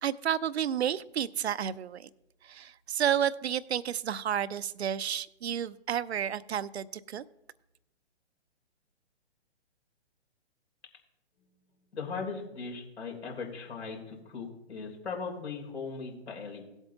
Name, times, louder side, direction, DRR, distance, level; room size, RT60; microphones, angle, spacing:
voice 1, 0.0-2.1 2.4-7.2, right 9 dB, 65° right, 0.6 m, -31 dB
voice 2, 11.9-16.6, left 5 dB, 70° left, 3.6 m, -38 dB
17.5 x 8.0 x 2.9 m
figure-of-eight pair, 130°, 34 cm